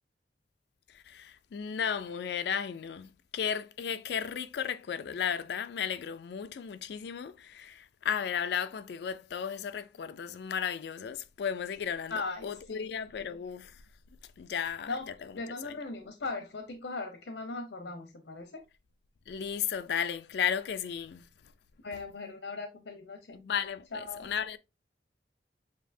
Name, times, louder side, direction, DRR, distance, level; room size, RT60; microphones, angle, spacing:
voice 1, 0.9-12.1 12.4-13.8 14.4-14.9 19.3-21.3 23.3-24.6, left 8 dB, 70° left, 0.3 m, -34 dB
voice 2, 12.1-12.8 13.1-13.3 14.9-18.6 21.8-23.4 23.9-24.3, left 3 dB, 90° left, 0.8 m, -39 dB
7.1 x 2.7 x 2.6 m
head